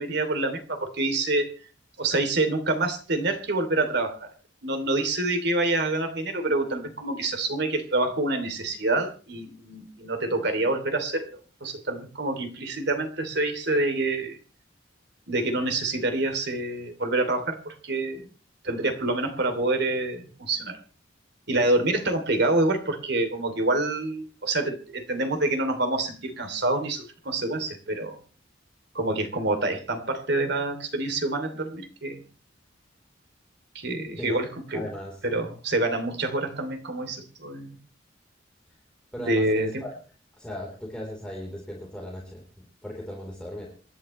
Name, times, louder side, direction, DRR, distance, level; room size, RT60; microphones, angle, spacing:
voice 1, 0.0-1.5 2.0-4.3 4.6-14.4 15.3-18.3 18.6-20.8 21.5-28.2 28.9-32.2 33.7-34.9 35.2-37.7 39.2-39.8, right 2 dB, 60° right, 6 dB, 2.9 m, -27 dB
voice 2, 34.7-35.2 39.1-39.9 40.4-43.7, left 1 dB, 5° left, -2 dB, 3.7 m, -37 dB
27.5 x 11.0 x 3.2 m, 0.37 s
head